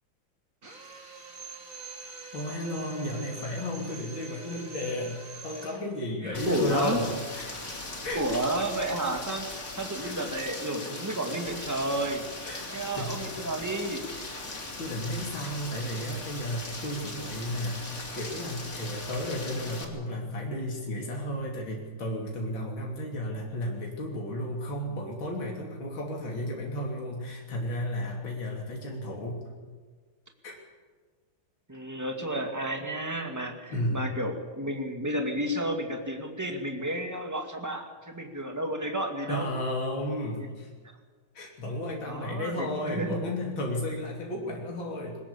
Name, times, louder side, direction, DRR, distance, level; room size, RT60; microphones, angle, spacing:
Drill, 0.6-5.9, right 3 dB, 40° right, 3.4 m, -44 dB
voice 1, 2.3-7.7 8.0-8.2 10.0-10.2 12.5-12.7 12.9-13.5 14.3-14.5 14.8-29.4 30.4-30.6 33.7-34.1 39.3-40.7 41.3-45.2, left 1 dB, 70° left, -1 dB, 3.8 m, -33 dB
voice 2, 6.2-7.0 8.1-12.3 12.7-14.0 31.7-39.5 40.4-40.5 42.0-43.3, right 1 dB, 10° right, 3 dB, 2.2 m, -32 dB
Rain, 6.3-19.8, left 2 dB, 35° left, 3.0 m, -39 dB
22.5 x 19.5 x 7.1 m, 1.4 s
omnidirectional pair, 2.2 m